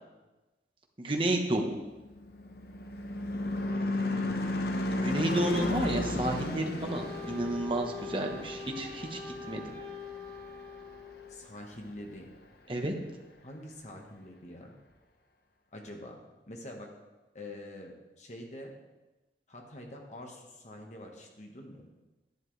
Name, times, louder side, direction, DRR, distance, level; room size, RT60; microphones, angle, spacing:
voice 1, 1.0-1.8 5.0-9.2 9.5-9.6 12.7-12.9, right 1 dB, 30° right, 2 dB, 1.2 m, -31 dB
Car passing by / Truck / Engine, 2.0-10.7, left 1 dB, 60° left, 0.9 m, -34 dB
voice 2, 4.0-4.5 11.3-12.3 13.4-14.7 15.7-16.2 16.5-16.9 17.3-18.7 19.5-21.9, left 1 dB, 40° left, 1 dB, 1.5 m, -45 dB
Wind instrument woodwind instrument, 6.8-11.4, left 5 dB, 15° left, 3.7 m, -43 dB
11.0 x 10.0 x 3.3 m, 1.1 s
head